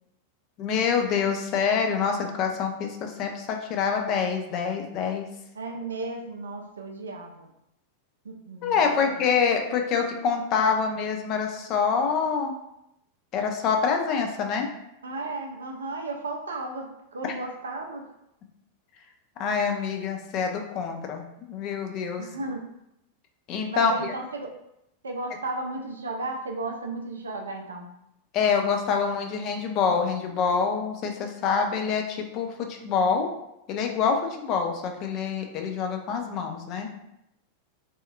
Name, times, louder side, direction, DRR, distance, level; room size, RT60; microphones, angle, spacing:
voice 1, 0.6-5.3 8.6-12.5 13.3-14.7 17.2-17.3 19.4-22.2 23.5-24.1 28.3-33.3 33.7-36.9, left 6 dB, 40° left, 4 dB, 0.4 m, -26 dB
voice 2, 5.6-7.5 8.2-9.2 15.0-18.1 22.2-22.6 23.7-24.5 25.0-27.9, right 2 dB, 70° right, 3 dB, 0.4 m, -34 dB
2.7 x 2.3 x 2.2 m, 0.83 s
figure-of-eight pair, 90°, 0 cm